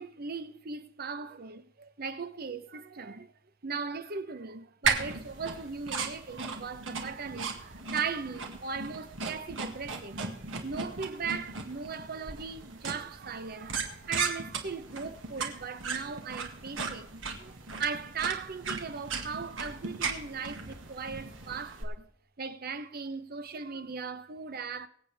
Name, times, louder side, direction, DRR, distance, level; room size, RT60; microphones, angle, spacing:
voice 1, 0.0-3.3 3.6-22.1 22.4-24.9, right 5 dB, 55° right, 0.8 m, -38 dB
sound 1, 4.8-21.8, right 4 dB, 85° right, 1.9 m, -37 dB
24.5 x 8.2 x 3.5 m
head